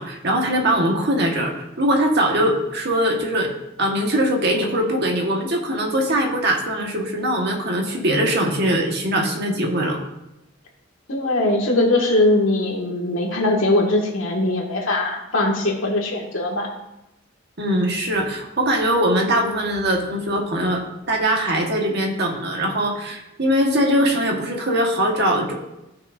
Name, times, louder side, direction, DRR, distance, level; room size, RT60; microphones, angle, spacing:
voice 1, 0.0-3.5 3.8-10.0 17.6-25.5, right 1 dB, 60° right, 1 dB, 1.5 m, -21 dB
voice 2, 11.1-16.7, left 2 dB, 90° left, -1 dB, 1.9 m, -21 dB
15.0 x 6.2 x 2.6 m, 0.91 s
head